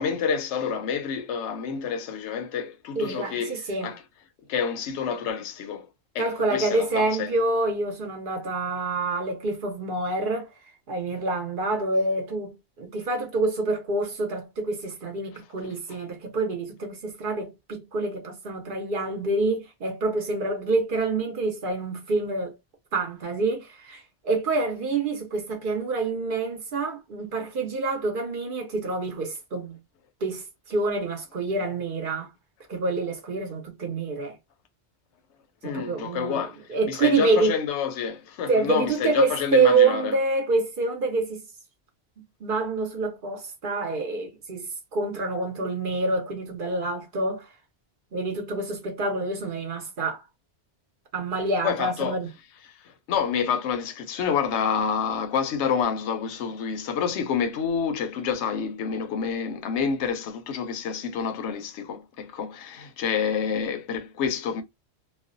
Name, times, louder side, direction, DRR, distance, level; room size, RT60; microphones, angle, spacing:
voice 1, 0.0-4.0 4.5-5.9 6.1-7.3 35.6-36.6 36.9-40.1 51.6-52.2 52.7-64.6, left 6 dB, 85° left, 0.9 m, -28 dB
voice 2, 3.0-3.9 6.2-10.5 10.9-22.5 22.9-29.8 30.2-32.3 32.7-34.4 35.6-37.6 38.5-41.4 42.4-47.5 48.1-50.2 51.1-52.3, right 3 dB, 55° right, 0.8 m, -27 dB
2.4 x 2.1 x 2.5 m
omnidirectional pair, 1.1 m